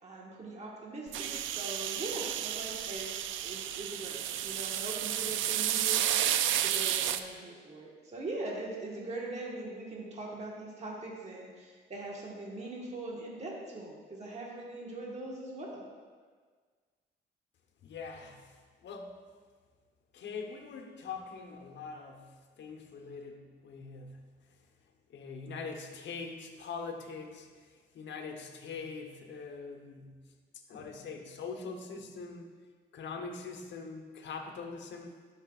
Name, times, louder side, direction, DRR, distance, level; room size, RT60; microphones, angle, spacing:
voice 1, 0.0-6.0 6.6-15.9, right 2 dB, 35° right, -3 dB, 1.5 m, -41 dB
sound 1, 1.1-7.2, right 11 dB, 80° right, 0.4 m, -32 dB
voice 2, 17.8-19.2 20.1-24.3 25.1-30.2 30.7-32.5 32.9-35.1, left 4 dB, 65° left, 3 dB, 1.0 m, -43 dB
12.5 x 5.8 x 2.4 m, 1.5 s
cardioid pair, 90°, 20 cm